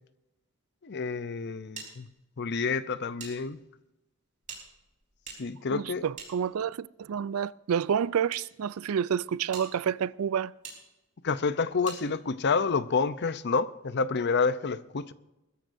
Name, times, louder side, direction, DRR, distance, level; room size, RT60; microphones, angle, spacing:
voice 1, 0.8-2.1 2.4-3.6 5.4-6.1 11.2-15.1, left 4 dB, 55° left, 0.7 m, -28 dB
sound 1, 1.8-3.3 3.6-3.7 4.4-6.9 7.7-8.4 9.0-9.1 9.5-9.7 10.6-10.8 11.8-12.0, right 5 dB, 35° right, 4.7 m, -45 dB
voice 2, 5.7-10.5, right 8 dB, 75° right, 0.4 m, -29 dB
21.0 x 14.0 x 2.7 m
head